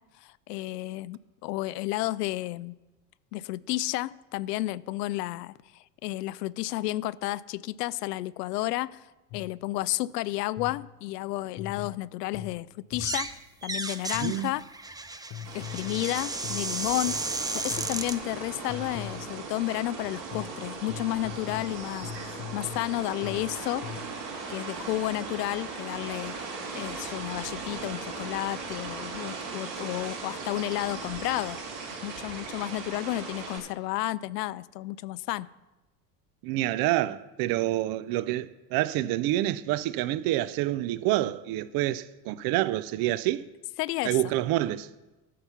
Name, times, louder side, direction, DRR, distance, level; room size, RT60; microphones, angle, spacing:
voice 1, 0.2-2.8 3.3-9.0 9.3-13.4 13.6-14.6 15.5-17.2 17.5-23.9 24.5-26.3 26.7-31.6 32.0-35.5 43.8-44.3, left 17 dB, 75° left, 0.5 m, -32 dB
sound 1, 9.3-9.7 10.6-11.0 11.6-13.4 14.1-14.6 15.3-17.4 17.7-18.2 18.7-19.5 20.3-24.3, left 10 dB, 45° left, 0.9 m, -42 dB
sound 2, 12.9-13.3 13.6-18.2, right 3 dB, 10° right, 0.7 m, -34 dB
voice 2, 14.2-14.5 36.4-43.4 44.0-44.9, right 15 dB, 50° right, 0.6 m, -27 dB
sound 3, 15.4-33.6, right 4 dB, 75° right, 3.6 m, -38 dB
12.5 x 5.6 x 6.8 m
hypercardioid pair, 70°, 49 cm